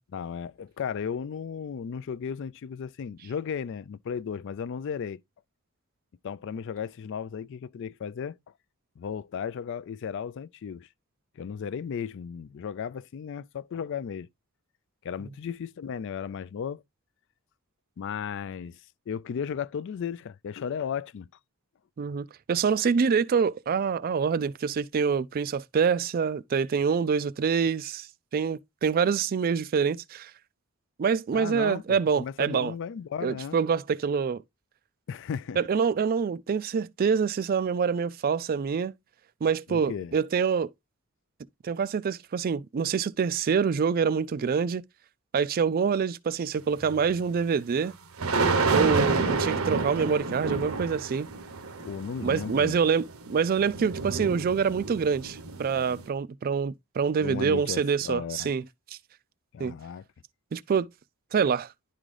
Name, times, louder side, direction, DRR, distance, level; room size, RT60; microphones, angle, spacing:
voice 1, 0.1-5.2 6.2-8.4 9.0-10.9 11.4-14.3 15.0-16.8 18.0-18.8 19.1-21.3 31.3-33.6 35.1-35.6 39.7-40.1 51.8-52.8 57.2-58.5 59.5-60.0, left 7 dB, 55° left, 0.3 m, -35 dB
voice 2, 22.0-28.1 28.3-30.3 31.0-32.7 33.2-34.4 35.6-38.9 39.4-40.7 41.6-44.8 45.3-47.9 48.7-51.3 52.2-58.6 59.6-59.7 60.5-60.9 61.3-61.7, right 6 dB, 40° right, 0.3 m, -26 dB
sound 1, 46.8-46.9 48.2-56.1, right 3 dB, 70° right, 0.9 m, -29 dB
10.5 x 3.8 x 3.2 m
head